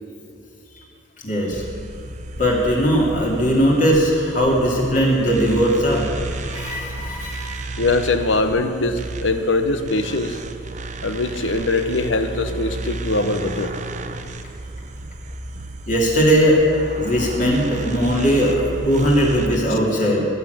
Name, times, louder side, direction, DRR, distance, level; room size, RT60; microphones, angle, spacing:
voice 1, 1.2-1.6 2.4-6.1 6.4-7.7 15.9-16.6 16.9-20.2, equal, 40° left, -2 dB, 2.8 m, -19 dB
sound 1, 1.5-19.6, right 2 dB, 40° right, 0.7 m, -32 dB
voice 2, 7.8-10.4 11.0-13.7 19.7-19.8, left 2 dB, 75° left, 9 dB, 1.0 m, -22 dB
19.0 x 6.8 x 9.4 m, 2.8 s
head